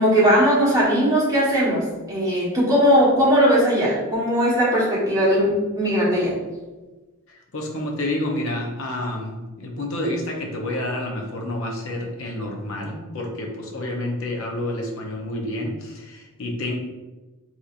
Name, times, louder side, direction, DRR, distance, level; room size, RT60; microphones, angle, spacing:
voice 1, 0.0-1.8 2.1-6.3, equal, 15° right, -8 dB, 1.2 m, -19 dB
voice 2, 7.3-16.8, left 1 dB, 65° left, 1 dB, 0.7 m, -29 dB
3.9 x 2.9 x 2.5 m, 1.2 s
head